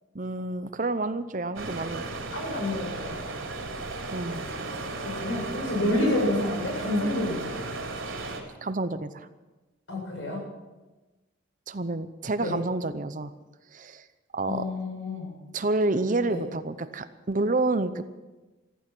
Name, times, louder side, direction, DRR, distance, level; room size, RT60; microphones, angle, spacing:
voice 1, 0.1-2.0 4.1-4.4 8.6-9.3 11.7-13.3 13.7-14.1 14.3-14.7 15.5-18.0, right 2 dB, 40° right, 12 dB, 0.7 m, -29 dB
sound 1, 1.5-8.4, right 3 dB, 85° right, 3.4 m, -35 dB
voice 2, 2.3-3.2 5.0-7.7 9.9-10.4 12.4-12.6 14.4-15.4 16.3-16.4, left 1 dB, 70° left, -1 dB, 7.7 m, -29 dB
15.0 x 14.5 x 6.2 m, 1.2 s
head